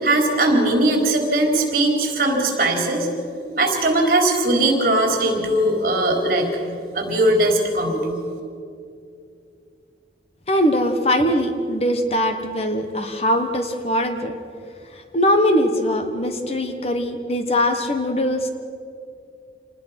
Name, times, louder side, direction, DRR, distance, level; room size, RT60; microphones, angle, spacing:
voice 1, 0.0-3.1 3.5-6.5 6.9-8.0, right 1 dB, 50° right, 2 dB, 4.1 m, -19 dB
voice 2, 10.5-14.3 15.1-18.5, equal, 35° left, 6 dB, 1.2 m, -21 dB
27.0 x 20.0 x 5.9 m, 2.5 s
head